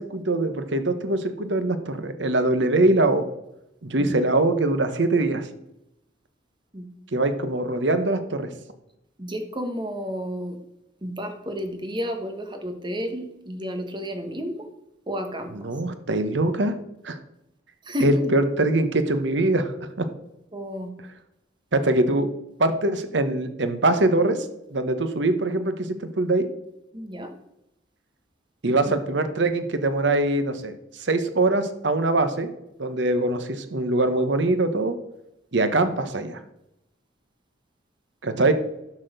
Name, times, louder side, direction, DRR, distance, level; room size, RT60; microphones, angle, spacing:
voice 1, 0.0-3.3 3.8-5.5 7.1-8.5 15.5-16.7 17.0-17.2 18.0-19.7 20.0-20.1 21.7-22.3 22.6-24.4 24.7-26.5 28.6-32.5 32.8-34.9 35.5-36.4 38.2-38.5, right 2 dB, 70° right, 9 dB, 1.0 m, -23 dB
voice 2, 9.2-10.5 11.0-14.6 15.1-15.5 17.9-18.1 20.5-20.9 26.9-27.3, equal, 25° right, 6 dB, 1.2 m, -31 dB
11.5 x 4.3 x 6.6 m, 0.85 s
head